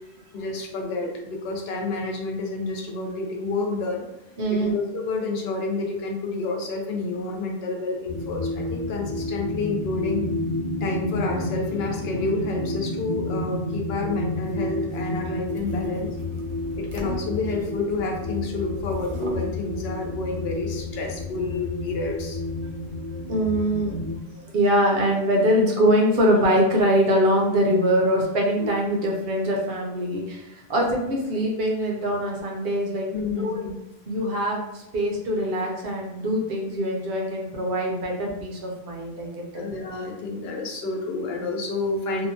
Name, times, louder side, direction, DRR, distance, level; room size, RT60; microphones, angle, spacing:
voice 1, 0.3-4.0 4.5-10.3 10.8-16.2 16.8-22.4 33.1-33.8 39.5-42.3, left 3 dB, 75° left, 1 dB, 0.8 m, -29 dB
voice 2, 4.4-4.7 23.3-23.9 24.3-33.6 34.1-39.7, equal, 70° right, -1 dB, 0.9 m, -23 dB
sound 1, 8.1-24.2, left 2 dB, 35° left, 0.4 m, -30 dB
sound 2, 14.2-18.3 18.7-19.5, right 1 dB, 50° right, 0.4 m, -40 dB
2.8 x 2.2 x 2.6 m, 0.92 s
omnidirectional pair, 1.1 m